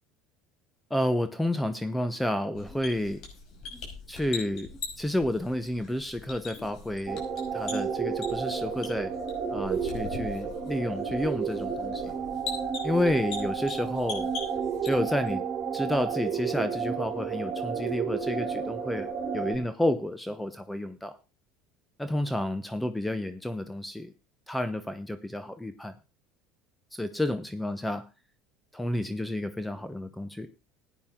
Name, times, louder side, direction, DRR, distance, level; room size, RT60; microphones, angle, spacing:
voice 1, 0.9-3.2 4.1-4.7 5.0-7.2 7.5-9.1 9.5-12.1 12.8-14.3 14.8-15.4 15.7-19.1 19.3-21.2 22.0-24.1 24.5-25.9 26.9-28.0 28.7-30.5, left 1 dB, 5° left, 10 dB, 1.0 m, -30 dB
sound 1, 2.5-15.3, left 4 dB, 55° left, 5.7 m, -42 dB
sound 2, 7.1-19.6, right 6 dB, 40° right, 3.1 m, -31 dB
15.5 x 9.3 x 3.8 m, 0.30 s
supercardioid pair, 100°, 0 cm